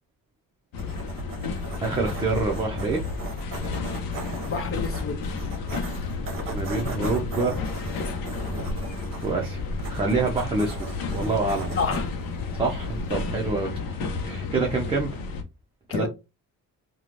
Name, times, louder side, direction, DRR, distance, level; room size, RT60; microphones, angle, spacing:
sound 1, 0.7-15.4, left 4 dB, 90° left, 0.6 m, -32 dB
sound 2, 0.8-13.5, right 2 dB, 40° right, 0.8 m, -37 dB
voice 1, 1.8-3.0 6.5-7.6 9.2-9.6 9.9-11.8 12.5-13.9 14.2-15.1 15.9-16.0, right 3 dB, 15° right, 0.5 m, -26 dB
voice 2, 4.4-5.2 11.7-12.1 15.9-16.1, left 5 dB, 40° left, 0.5 m, -29 dB
3.0 x 2.2 x 2.4 m
cardioid pair, 145°, 33 cm